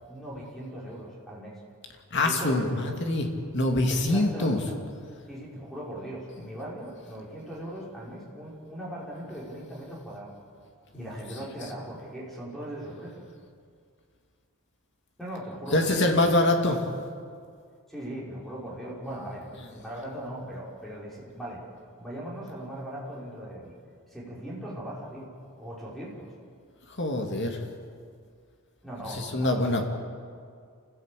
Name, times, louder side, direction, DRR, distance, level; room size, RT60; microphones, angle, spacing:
voice 1, 0.1-1.6 2.2-3.0 3.9-4.8 5.3-10.3 10.9-13.3 15.2-16.8 17.9-19.4 19.7-21.6 22.0-23.7 24.1-25.3 25.6-26.3 28.8-29.8, right 1 dB, ahead, -5 dB, 5.2 m, -39 dB
voice 2, 2.1-3.3 3.5-4.6 10.9-11.1 15.7-16.8 27.0-27.6 29.1-29.8, left 2 dB, 55° left, 3 dB, 2.7 m, -24 dB
28.0 x 15.5 x 8.5 m, 2.2 s
head